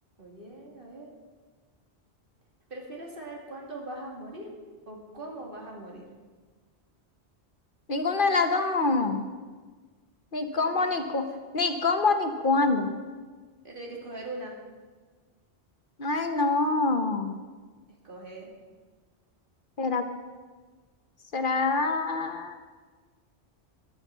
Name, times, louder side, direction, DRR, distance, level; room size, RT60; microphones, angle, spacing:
voice 1, 0.2-1.1 2.7-4.6 4.9-6.1 10.5-11.4 13.6-14.6 18.0-18.5, right 1 dB, 55° right, -1 dB, 2.5 m, -41 dB
voice 2, 7.9-9.2 10.3-11.3 11.5-12.9 16.0-17.3 19.8-20.1 21.3-22.5, left 3 dB, 55° left, 7 dB, 1.0 m, -25 dB
12.0 x 9.7 x 7.2 m, 1.4 s
omnidirectional pair, 1.1 m